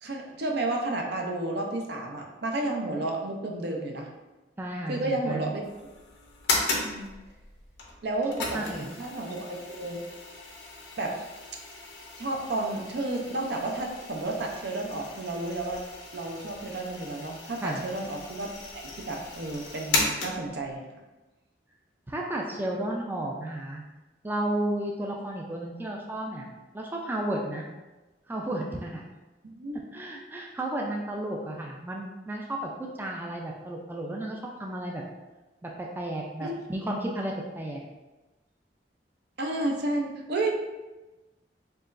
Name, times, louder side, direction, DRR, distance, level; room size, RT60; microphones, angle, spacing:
voice 1, 0.0-4.1 4.9-5.6 6.7-7.1 8.0-10.0 11.0-11.2 12.2-15.8 16.1-20.8 29.4-29.8 36.4-36.7 39.4-40.5, right 2 dB, 65° right, 1 dB, 0.6 m, -32 dB
voice 2, 4.6-5.5 8.5-8.9 17.6-17.8 22.1-23.8 24.2-26.5 26.7-27.6 28.3-29.0 29.9-35.0 35.6-37.8, right 1 dB, 10° right, -1 dB, 0.3 m, -33 dB
sound 1, 5.6-20.7, left 3 dB, 90° left, 0.7 m, -36 dB
4.5 x 3.0 x 2.5 m, 1.1 s
head